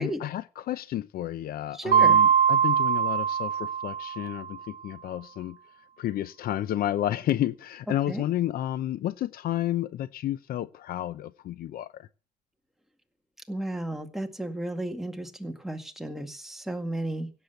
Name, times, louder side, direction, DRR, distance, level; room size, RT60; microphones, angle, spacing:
voice 1, 0.0-5.6 6.0-12.1, left 12 dB, 65° left, 0.7 m, -31 dB
voice 2, 1.7-2.2 8.1-8.2 13.5-17.3, right 1 dB, ahead, 2.0 m, -33 dB
Mallet percussion, 1.9-4.5, right 8 dB, 60° right, 0.9 m, -22 dB
16.5 x 7.6 x 8.1 m
cardioid pair, 110°, 17 cm